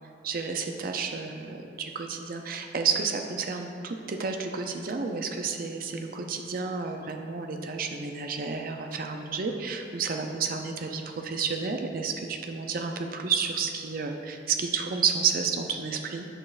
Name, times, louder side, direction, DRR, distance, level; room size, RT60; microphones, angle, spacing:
voice 1, 0.2-16.3, right 5 dB, 55° right, 4 dB, 0.5 m, -31 dB
7.7 x 6.3 x 2.5 m, 2.6 s
head